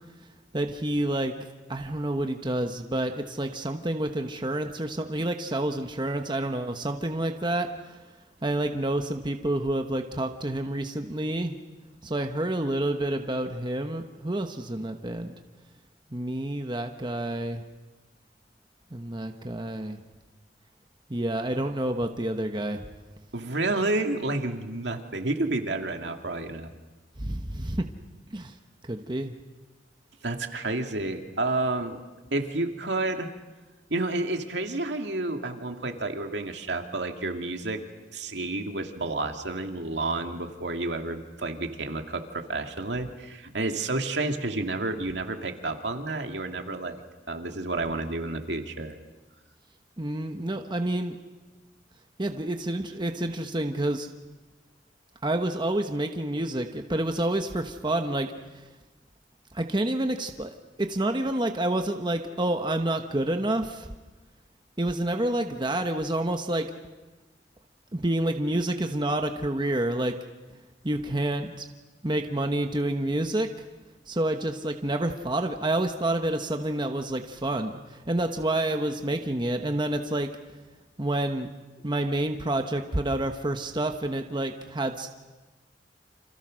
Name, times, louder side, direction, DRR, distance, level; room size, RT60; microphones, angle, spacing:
voice 1, 0.5-1.3 1.7-8.0 8.4-11.6 12.0-15.4 16.1-17.6 18.9-20.0 21.1-22.8 27.2-27.9 28.3-28.5 28.8-29.3 50.0-51.2 52.2-54.1 55.2-58.6 59.5-60.5 60.8-63.9 64.8-66.7 67.9-70.2 70.8-71.6 72.0-73.6 74.1-80.3 81.0-81.5 81.8-85.1, right 1 dB, 25° right, 5 dB, 1.1 m, -28 dB
voice 2, 23.3-26.7 30.2-32.0 32.3-33.3 33.9-37.8 38.1-47.0 47.3-49.0, right 2 dB, 75° right, 4 dB, 2.3 m, -30 dB
29.5 x 27.0 x 6.4 m, 1.2 s
head